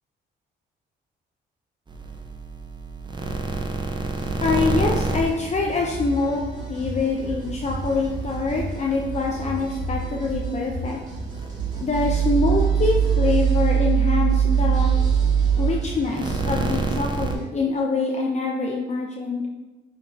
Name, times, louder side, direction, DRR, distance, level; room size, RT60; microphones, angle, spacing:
sound 1, 1.9-6.3 6.6-17.3, right 6 dB, 25° right, 0.7 m, -24 dB
sound 2, 4.0-17.4, right 2 dB, 40° right, 2.2 m, -34 dB
voice 1, 4.4-6.4 6.7-11.0 11.8-14.9 15.5-19.4, left 3 dB, 35° left, -1 dB, 0.7 m, -25 dB
9.4 x 4.2 x 2.8 m, 1.2 s
cardioid pair, 90°, 20 cm